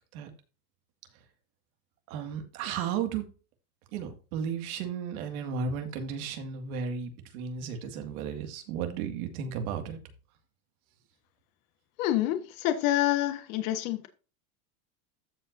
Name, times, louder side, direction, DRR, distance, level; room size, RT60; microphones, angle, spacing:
voice 1, 2.1-3.3 3.9-10.0, right 6 dB, 80° right, 2.1 m, -34 dB
voice 2, 12.0-14.1, left 14 dB, 70° left, 1.4 m, -27 dB
14.5 x 5.0 x 2.6 m
supercardioid pair, 155°, 43 cm